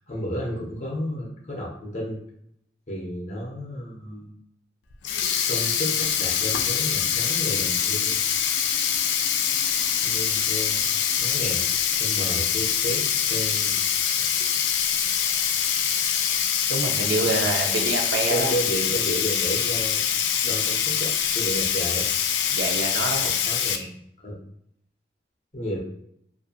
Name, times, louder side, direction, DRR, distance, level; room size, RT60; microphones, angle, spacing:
voice 1, 0.0-2.2 2.9-4.3 5.0-8.2 10.0-10.8 11.2-11.6 12.0-13.8 14.2-14.3 17.2-17.9 18.3-20.0 20.4-22.1 23.1-24.4 25.5-25.8, equal, 40° left, -2 dB, 0.6 m, -32 dB
Sink (filling or washing), 4.9-23.8, left 8 dB, 90° left, 0.3 m, -24 dB
voice 2, 16.7-18.5 22.5-23.3, right 3 dB, 65° right, 2 dB, 0.5 m, -26 dB
2.6 x 2.4 x 2.4 m, 0.73 s
head